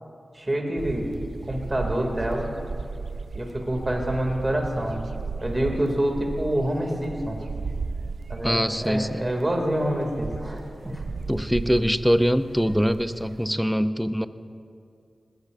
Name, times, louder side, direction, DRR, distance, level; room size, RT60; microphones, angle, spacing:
voice 1, 0.3-1.0 1.4-2.5 3.3-5.0 5.4-7.4 8.3-11.0, right 1 dB, 30° right, 1 dB, 2.6 m, -27 dB
sound 1, 0.8-13.5, right 4 dB, 70° right, 0.4 m, -35 dB
voice 2, 8.4-9.3 11.3-14.3, equal, ahead, 12 dB, 0.6 m, -23 dB
20.0 x 15.5 x 2.6 m, 2.4 s
cardioid pair, 45°, 0 cm